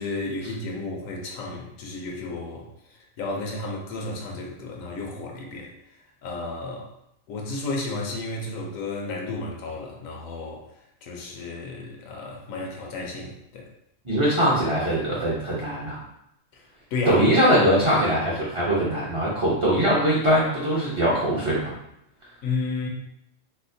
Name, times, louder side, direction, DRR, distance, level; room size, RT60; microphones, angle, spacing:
voice 1, 0.0-2.7 3.2-5.7 6.2-6.9 7.3-10.7 11.0-13.7 16.9-17.3 22.4-22.9, left 3 dB, 75° left, 0 dB, 1.0 m, -32 dB
voice 2, 14.0-16.0 17.1-21.7, equal, 35° right, -8 dB, 0.5 m, -22 dB
4.2 x 2.1 x 2.6 m, 0.79 s
omnidirectional pair, 1.4 m